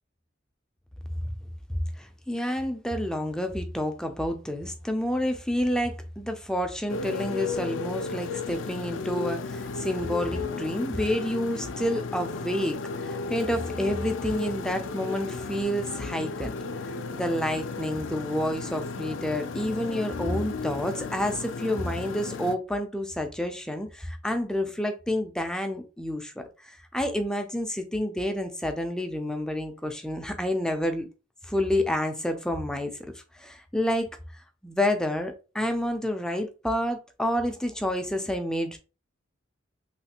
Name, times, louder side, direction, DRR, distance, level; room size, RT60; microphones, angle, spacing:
voice 1, 1.7-16.5 17.1-26.3 26.6-31.1 31.4-38.8, left 1 dB, 5° left, 0.3 m, -29 dB
Motorcycle, 6.9-22.6, left 4 dB, 75° left, 0.4 m, -34 dB
3.2 x 2.3 x 2.8 m
head